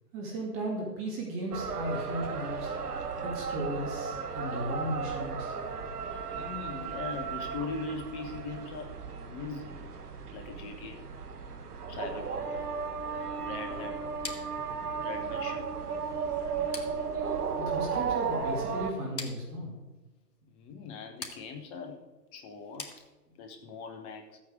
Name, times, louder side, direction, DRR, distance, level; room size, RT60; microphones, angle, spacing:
voice 1, 0.1-2.7 3.2-5.5 17.5-19.8, right 1 dB, 25° right, -1 dB, 2.6 m, -35 dB
sound 1, 1.5-18.9, right 5 dB, 65° right, 1.3 m, -35 dB
voice 2, 6.3-9.8 10.3-11.0 11.9-12.6 13.3-14.0 15.0-15.7 20.5-22.0 22.3-23.0 23.3-24.4, left 4 dB, 10° left, 5 dB, 0.6 m, -41 dB
sound 2, 14.2-23.6, left 3 dB, 75° left, 2.0 m, -47 dB
13.5 x 8.6 x 4.9 m, 1.2 s
figure-of-eight pair, 130°, 49 cm